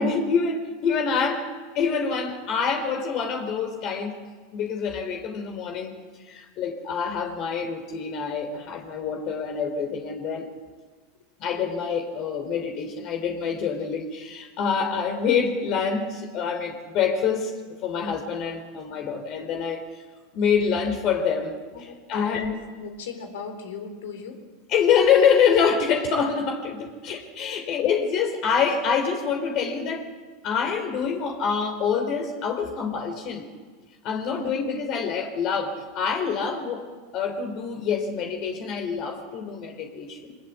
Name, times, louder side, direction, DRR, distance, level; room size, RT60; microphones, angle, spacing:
voice 1, 0.0-1.4 1.7-4.1 4.5-5.9 6.3-10.5 11.4-17.5 17.8-19.8 20.3-22.5 24.7-30.0 30.4-33.5 34.0-36.8 37.1-40.4, left 6 dB, 50° left, 4 dB, 3.2 m, -26 dB
voice 2, 21.7-24.4 27.5-27.6 34.2-34.4, left 5 dB, 80° left, 6 dB, 4.2 m, -38 dB
23.0 x 20.0 x 8.2 m, 1.4 s
hypercardioid pair, 105°, 0 cm